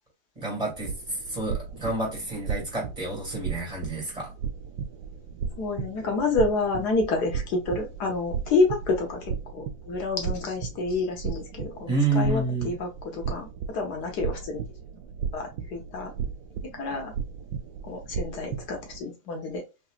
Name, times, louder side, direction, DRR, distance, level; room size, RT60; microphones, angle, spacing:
voice 1, 0.3-4.3 11.9-12.7, right 2 dB, 25° right, 1.8 m, -29 dB
sound 1, 0.7-19.0, right 7 dB, 80° right, 1.1 m, -35 dB
voice 2, 5.6-9.2 9.5-14.6 15.3-16.1 16.7-17.1 17.9-19.6, left 3 dB, 85° left, 1.7 m, -28 dB
3.9 x 2.9 x 2.2 m
omnidirectional pair, 1.7 m